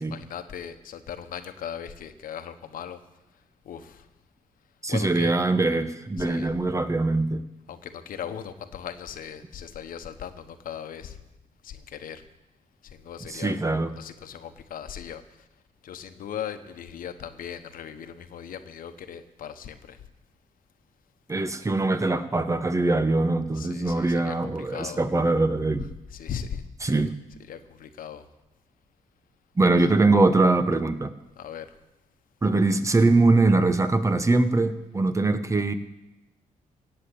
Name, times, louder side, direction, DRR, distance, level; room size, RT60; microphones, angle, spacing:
voice 1, 0.0-3.0 3.6-4.1 4.9-5.3 6.2-6.5 7.7-11.2 11.6-12.2 12.8-13.6 14.0-15.2 15.8-20.0 23.6-24.4 24.7-25.0 26.1-26.9 27.5-28.2 31.4-31.7, left 8 dB, 75° left, 9 dB, 1.1 m, -38 dB
voice 2, 4.8-7.4 13.3-14.0 21.3-25.9 26.8-27.1 29.6-31.1 32.4-35.7, right 2 dB, 20° right, 10 dB, 1.0 m, -22 dB
17.0 x 6.8 x 8.7 m, 0.96 s
cardioid pair, 85°, 15 cm